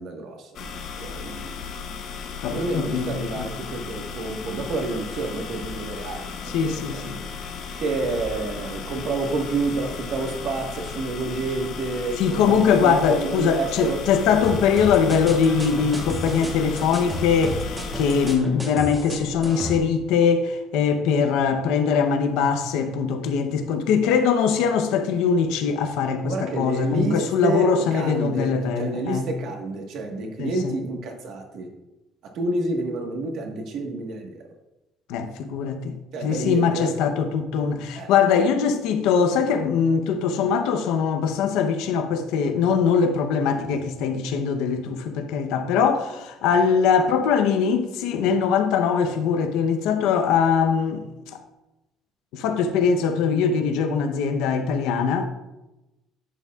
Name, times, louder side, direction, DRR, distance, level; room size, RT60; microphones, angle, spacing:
voice 1, 0.0-1.7 2.5-7.2 7.7-14.0 26.2-31.7 32.3-34.5 36.1-36.9 37.9-38.1, right 3 dB, 50° right, 1.4 m, -29 dB
sound 1, 0.5-18.4, left 5 dB, 50° left, 1.0 m, -35 dB
voice 2, 2.4-3.1 3.3-3.5 6.5-7.2 12.2-29.2 30.4-30.8 35.1-36.0 36.2-51.4 52.3-55.2, left 6 dB, 85° left, 0.8 m, -22 dB
sound 2, 14.4-19.8, equal, 10° right, 1.2 m, -33 dB
11.0 x 8.3 x 2.4 m
cardioid pair, 180°, 0 cm